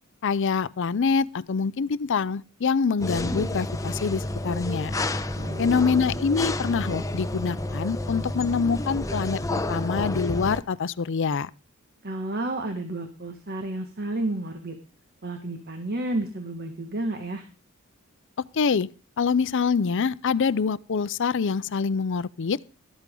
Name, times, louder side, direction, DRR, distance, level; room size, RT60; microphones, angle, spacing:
voice 1, 0.2-4.9 5.6-11.5 18.5-18.9 19.2-22.6, left 5 dB, 60° left, 0.5 m, -25 dB
sound 1, 3.0-10.6, left 1 dB, 15° left, 0.8 m, -30 dB
voice 2, 5.4-5.8 12.0-14.8 15.2-17.5, right 2 dB, 50° right, 1.7 m, -31 dB
13.0 x 13.0 x 3.8 m
head